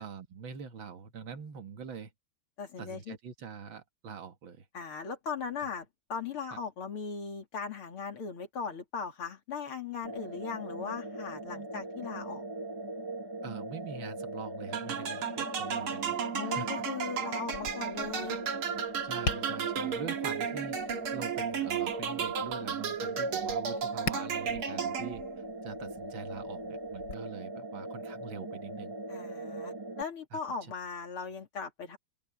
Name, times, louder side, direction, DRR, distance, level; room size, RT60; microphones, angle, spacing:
voice 1, 0.0-2.1 2.8-4.7 6.5-6.6 13.4-16.2 16.4-16.7 19.0-20.8 21.1-25.2 25.6-29.0 30.3-30.4, right 6 dB, 65° right, 2.2 m, -44 dB
voice 2, 2.6-3.2 4.7-12.5 16.3-18.4 29.1-32.0, left 5 dB, 85° left, 3.9 m, -38 dB
sound 1, 10.0-30.0, right 1 dB, 25° right, 0.5 m, -41 dB
sound 2, 14.7-25.4, right 7 dB, 85° right, 2.7 m, -34 dB
Tap, 17.5-27.1, left 3 dB, 55° left, 3.4 m, -43 dB
open air
omnidirectional pair, 2.3 m